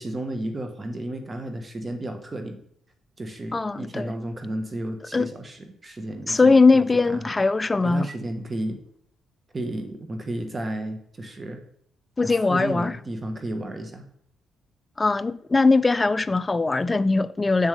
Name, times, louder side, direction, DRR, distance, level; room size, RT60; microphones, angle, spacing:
voice 1, 0.0-2.6 3.2-6.5 7.0-7.3 7.8-8.8 9.5-11.6 12.2-14.0, right 1 dB, 30° right, 1.2 m, -33 dB
voice 2, 3.5-4.1 5.1-5.3 6.3-8.1 12.2-12.9 15.0-17.7, left 3 dB, 20° left, 0.3 m, -20 dB
7.4 x 7.1 x 3.4 m
cardioid pair, 90°, 0 cm